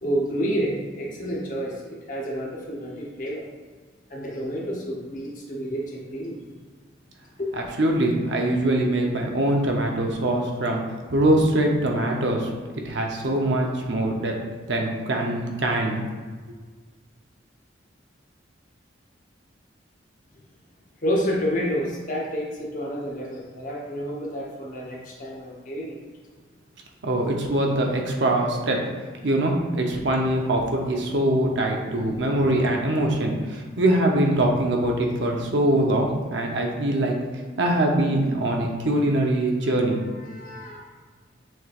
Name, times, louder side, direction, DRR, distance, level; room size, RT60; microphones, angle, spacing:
voice 1, 0.0-3.5 4.1-6.4 7.4-7.5 21.0-26.1 31.8-32.8 39.6-41.0, equal, 45° left, -3 dB, 0.9 m, -30 dB
voice 2, 7.8-10.8 11.1-12.5 12.8-14.3 14.7-16.0 27.0-28.8 29.2-37.2 37.6-40.0, right 1 dB, 70° right, 1 dB, 0.7 m, -23 dB
6.1 x 3.3 x 2.4 m, 1.4 s
head